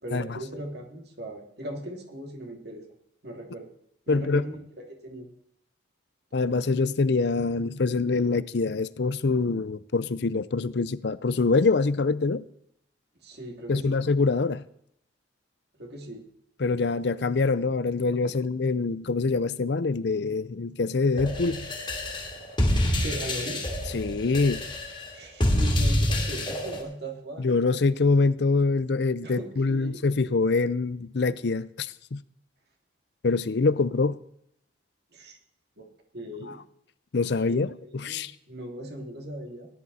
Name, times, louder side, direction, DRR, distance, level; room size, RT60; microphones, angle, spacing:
voice 1, 0.0-2.9 3.2-3.7 4.1-5.3 13.2-14.0 15.8-16.2 23.0-23.6 25.1-27.5 29.2-30.0 35.1-35.4 35.8-36.6 37.5-39.7, right 1 dB, 55° right, 2.7 m, -39 dB
voice 2, 4.1-4.4 6.3-12.4 13.7-14.6 16.6-21.7 23.9-24.6 27.4-32.2 33.2-34.2 37.1-38.3, left 3 dB, 60° left, 0.5 m, -25 dB
sound 1, 21.2-26.8, left 1 dB, 25° left, 2.4 m, -27 dB
18.0 x 11.0 x 4.2 m
head